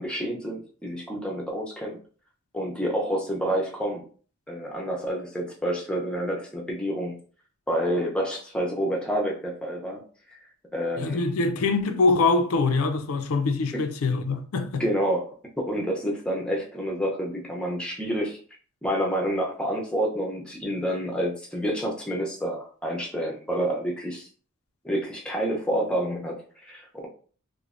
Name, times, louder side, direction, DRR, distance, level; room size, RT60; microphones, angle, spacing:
voice 1, 0.0-2.0 2.5-4.0 4.5-7.1 7.7-10.0 10.7-11.2 13.7-13.8 14.8-18.4 18.8-24.3 24.8-27.1, equal, 5° left, 0.5 m, -28 dB
voice 2, 11.0-14.8, left 3 dB, 80° left, 0.4 m, -24 dB
3.0 x 2.1 x 2.4 m
head